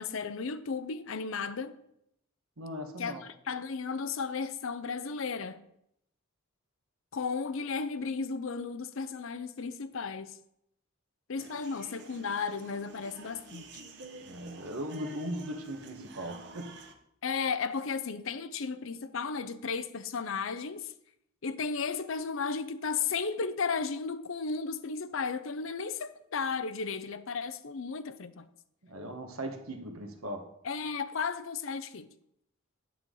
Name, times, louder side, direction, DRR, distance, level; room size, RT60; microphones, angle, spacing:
voice 1, 0.0-1.8 3.0-5.6 7.1-10.4 11.3-13.7 17.2-20.9 21.4-28.5 30.6-32.1, left 5 dB, 65° left, 0.6 m, -34 dB
voice 2, 2.6-3.2 14.2-16.7 28.8-30.5, equal, 85° right, 1.4 m, -38 dB
sound 1, 11.4-16.9, right 3 dB, 55° right, 1.0 m, -49 dB
9.2 x 8.3 x 3.9 m
head